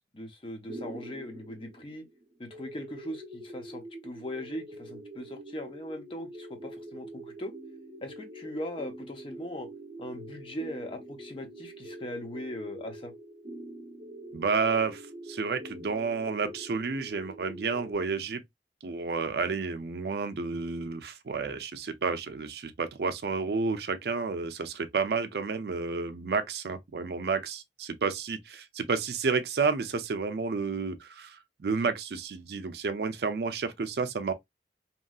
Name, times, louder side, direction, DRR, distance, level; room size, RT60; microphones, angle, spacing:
voice 1, 0.1-2.0 2.4-7.5 8.0-9.7 10.0-13.1, left 1 dB, 30° left, 0.7 m, -39 dB
sound 1, 0.7-17.9, right 1 dB, 30° right, 0.7 m, -45 dB
voice 2, 14.3-15.0 15.3-18.4 18.8-34.3, right 4 dB, 65° right, 0.4 m, -31 dB
3.0 x 2.7 x 2.3 m
head